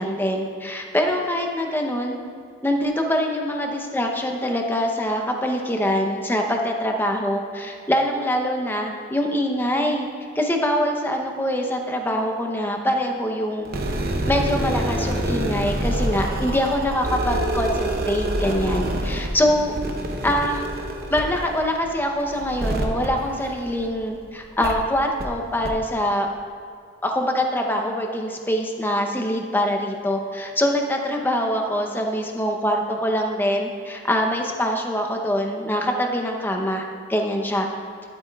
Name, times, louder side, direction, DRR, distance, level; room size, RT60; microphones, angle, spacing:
voice 1, 0.0-2.2 2.6-10.1 10.3-13.7 14.3-19.7 20.2-20.7 21.1-26.3 27.0-36.8 37.1-37.7, equal, 10° left, 2 dB, 0.7 m, -24 dB
sound 1, 13.6-24.0 24.6-24.7 25.2-25.3 25.6-25.7, right 1 dB, 50° right, 0.8 m, -27 dB
12.0 x 8.4 x 2.3 m, 2.2 s
head